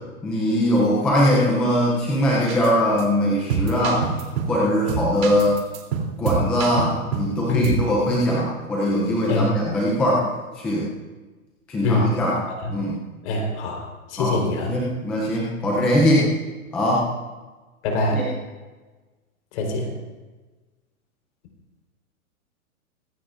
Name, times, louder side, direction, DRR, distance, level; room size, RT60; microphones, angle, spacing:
voice 1, 0.2-4.1 4.5-5.6 6.2-10.3 10.6-10.9 11.7-12.4 12.7-13.0 14.2-14.4 14.7-16.3 16.7-17.1 18.1-18.3, equal, 5° left, -4 dB, 0.3 m, -21 dB
sound 1, 2.5-2.7 3.0-3.1 3.5-4.6 4.9-7.3 7.6-7.9, right 6 dB, 60° right, 2.9 m, -26 dB
voice 2, 13.2-13.8 14.1-14.7 17.8-18.2 19.5-19.9, left 3 dB, 50° left, 1 dB, 3.8 m, -23 dB
24.0 x 10.0 x 2.4 m, 1.3 s
hypercardioid pair, 140°, 45 cm